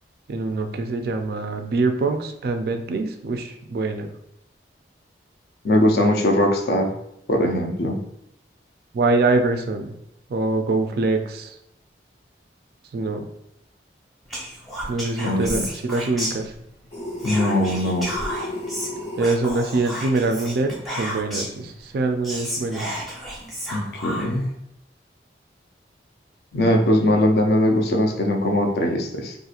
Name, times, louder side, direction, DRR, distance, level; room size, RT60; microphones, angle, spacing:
voice 1, 0.3-4.1 8.9-9.9 10.3-11.6 12.9-13.3 14.9-16.5 19.2-22.9, right 3 dB, 55° right, 6 dB, 0.3 m, -24 dB
voice 2, 5.6-6.9 7.3-8.0 15.2-15.6 17.2-18.2 23.7-24.5 26.5-29.4, left 1 dB, 60° left, 2 dB, 0.5 m, -20 dB
Whispering, 14.3-16.8 17.2-21.6 22.0-22.1 22.2-24.5, equal, ahead, 0.6 m, -32 dB
sound 1, 16.9-19.3, left 1 dB, 30° left, 1.0 m, -33 dB
2.8 x 2.5 x 2.4 m, 0.80 s
head